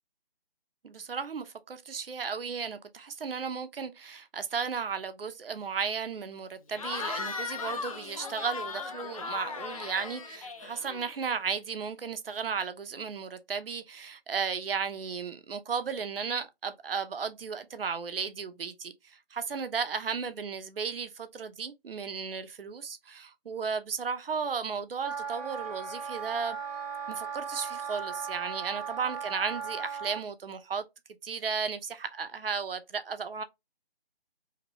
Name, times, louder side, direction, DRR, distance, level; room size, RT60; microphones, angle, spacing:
voice 1, 0.8-26.6 27.1-30.8 31.2-33.4, right 6 dB, 65° right, 0.7 m, -34 dB
Cheering / Crowd, 6.7-11.3, left 4 dB, 35° left, 0.5 m, -37 dB
Wind instrument woodwind instrument, 25.0-30.2, right 6 dB, 15° right, 0.7 m, -37 dB
3.0 x 2.9 x 2.8 m
figure-of-eight pair, 155°, 31 cm